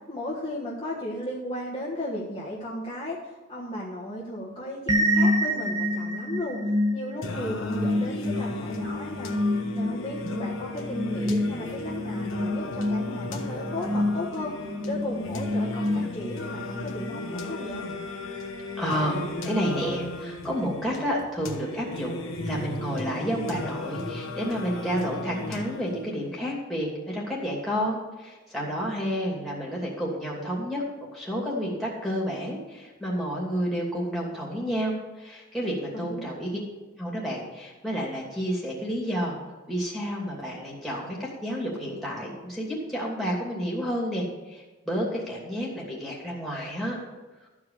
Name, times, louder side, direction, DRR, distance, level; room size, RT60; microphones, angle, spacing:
voice 1, 0.1-6.6 6.9-9.3 9.7-14.5 14.8-17.8 35.9-36.2, left 1 dB, 25° left, -7 dB, 1.5 m, -35 dB
sound 1, 4.9-16.5, left 1 dB, 20° right, 0.7 m, -28 dB
Singing, 7.2-26.2, left 2 dB, 70° left, 1.3 m, -35 dB
voice 2, 18.8-30.8 31.1-36.6 37.0-39.4 39.7-47.0, equal, ahead, -4 dB, 2.8 m, -30 dB
13.5 x 4.9 x 7.2 m, 1.2 s
head